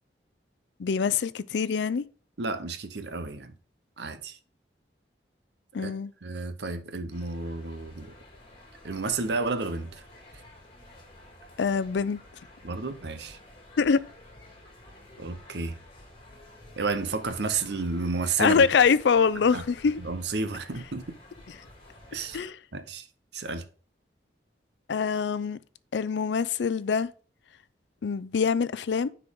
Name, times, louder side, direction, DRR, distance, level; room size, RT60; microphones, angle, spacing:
voice 1, 0.8-2.0 5.7-6.1 11.6-12.2 13.8-14.0 18.4-20.0 22.3-22.6 24.9-25.6 25.9-27.1 28.0-29.1, left 5 dB, 80° left, 0.4 m, -24 dB
voice 2, 2.4-3.5 4.0-4.4 5.8-5.9 6.2-8.1 8.8-10.0 12.6-13.4 15.2-15.8 16.8-18.7 19.5-19.6 20.0-21.2 22.1-22.4 22.7-23.1 23.3-23.7, right 3 dB, 75° right, 0.9 m, -31 dB
sound 1, 7.1-22.5, left 1 dB, 30° left, 2.2 m, -51 dB
9.7 x 4.6 x 3.6 m
head